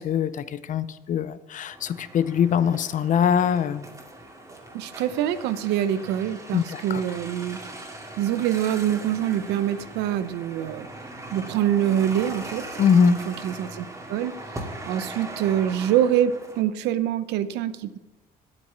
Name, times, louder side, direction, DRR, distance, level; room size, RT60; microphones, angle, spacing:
voice 1, 0.0-3.9 6.5-7.0 12.8-13.2, left 8 dB, 50° left, 15 dB, 0.6 m, -22 dB
sound 1, 1.7-16.6, right 1 dB, 20° right, 2.2 m, -40 dB
voice 2, 4.7-7.6 8.2-10.9 11.3-14.3 14.8-18.0, right 10 dB, 85° right, 13 dB, 0.7 m, -25 dB
9.8 x 8.5 x 6.8 m, 1.0 s
cardioid pair, 110°, 17 cm